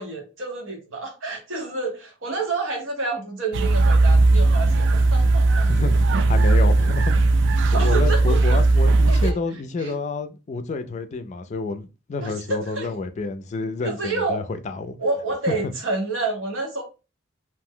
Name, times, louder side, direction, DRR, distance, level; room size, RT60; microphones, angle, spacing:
voice 1, 0.0-5.7 7.7-8.6 9.1-9.4 9.8-9.9 12.2-12.9 13.8-14.4 15.0-16.8, right 3 dB, 90° right, 1.0 m, -29 dB
sound 1, 3.5-9.3, right 2 dB, 65° right, 0.3 m, -17 dB
voice 2, 5.7-15.0 15.5-15.6, left 3 dB, 35° left, 0.3 m, -29 dB
2.6 x 2.0 x 3.6 m
head